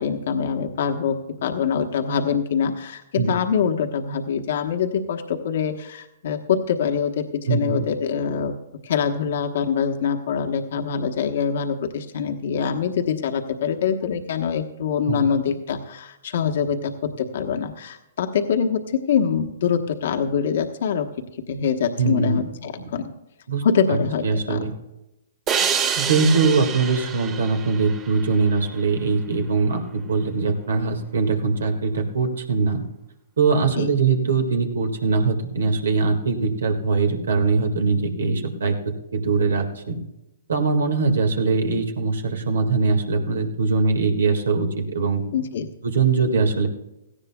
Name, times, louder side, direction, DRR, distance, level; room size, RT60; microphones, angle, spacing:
voice 1, 0.0-8.6 8.8-21.1 21.5-23.1 23.6-24.6 25.6-25.8 33.7-33.9 45.3-45.7, left 7 dB, 65° left, 5 dB, 1.1 m, -24 dB
voice 2, 7.5-7.8 15.1-15.2 22.0-22.4 23.5-23.6 23.9-24.7 26.0-32.8 33.4-38.8 39.1-40.0 40.5-45.2 45.8-46.7, right 4 dB, 80° right, 5 dB, 1.8 m, -22 dB
sound 1, 25.5-28.8, right 7 dB, 25° right, 1.4 m, -27 dB
17.0 x 14.5 x 2.3 m, 0.92 s
hypercardioid pair, 130°, 0 cm